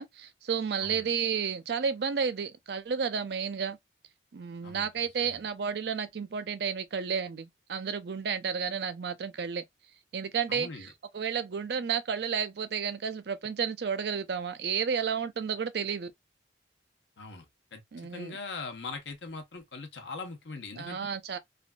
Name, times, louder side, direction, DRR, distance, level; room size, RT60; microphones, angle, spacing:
voice 1, 0.0-3.8 4.3-9.6 10.1-16.1 17.9-18.4 20.7-21.4, right 6 dB, 60° right, 0.4 m, -32 dB
voice 2, 0.8-1.1 4.6-5.5 10.5-10.9 17.2-17.5 17.7-21.1, left 4 dB, 80° left, 0.9 m, -41 dB
3.4 x 2.5 x 2.2 m
head